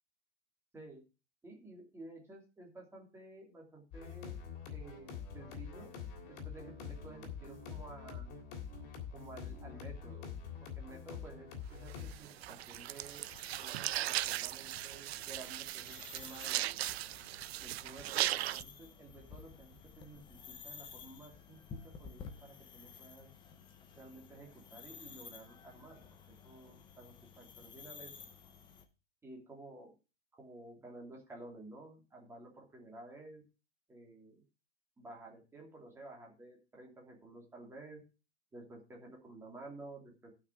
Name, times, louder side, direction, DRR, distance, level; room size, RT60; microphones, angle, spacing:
voice 1, 1.4-4.4 4.7-5.9 6.3-8.3 9.1-13.2 13.5-17.0 17.6-23.3 24.0-26.0 26.4-28.1 29.2-29.9 30.4-33.4 33.9-34.4 35.0-38.0 38.5-40.3, right 2 dB, 5° right, -1 dB, 2.8 m, -53 dB
sound 1, 3.9-12.1, left 7 dB, 30° left, 3.2 m, -45 dB
sound 2, 11.9-18.6, right 15 dB, 60° right, 0.5 m, -38 dB
sound 3, 12.1-28.9, left 6 dB, 15° left, 0.9 m, -54 dB
12.0 x 6.0 x 6.1 m, 0.31 s
supercardioid pair, 170°, 35 cm